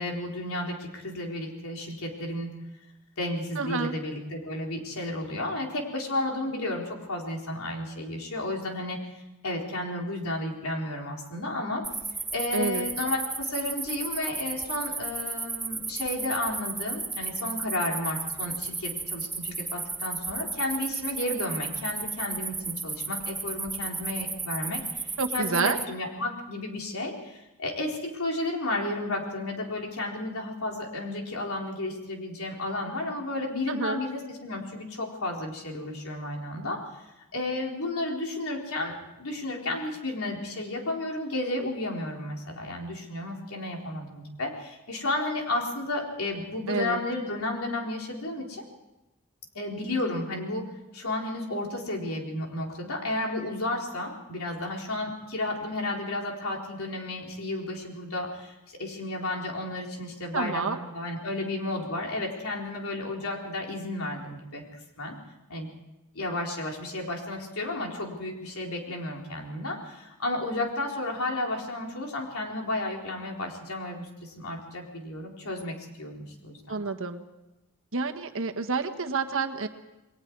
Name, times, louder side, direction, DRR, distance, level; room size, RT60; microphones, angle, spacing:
voice 1, 0.0-2.5 3.2-9.0 9.4-11.8 12.3-37.1 37.3-48.7 49.5-50.7 50.9-65.1 65.5-65.7 66.1-76.8, left 2 dB, 70° left, 0 dB, 4.1 m, -32 dB
voice 2, 3.6-3.9 12.5-12.8 25.2-25.8 33.7-34.0 46.7-47.0 60.3-60.8 76.7-77.2 77.9-79.7, right 4 dB, 65° right, 6 dB, 1.6 m, -29 dB
sound 1, 11.8-25.9, right 4 dB, 10° right, 0.7 m, -34 dB
29.0 x 21.0 x 4.8 m, 0.97 s
head